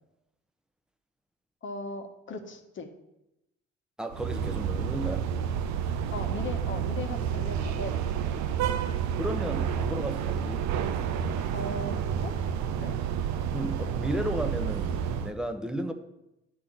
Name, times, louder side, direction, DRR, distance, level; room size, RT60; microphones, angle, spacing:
voice 1, 1.6-2.9 6.1-8.4 11.5-12.3 12.8-13.0, left 3 dB, 35° left, 6 dB, 1.3 m, -38 dB
voice 2, 4.0-5.3 9.1-10.6 13.5-15.9, equal, ahead, 6 dB, 1.1 m, -33 dB
sound 1, 4.1-15.3, right 8 dB, 55° right, 0.8 m, -30 dB
11.0 x 3.7 x 7.3 m, 0.89 s
figure-of-eight pair, 50°, 34 cm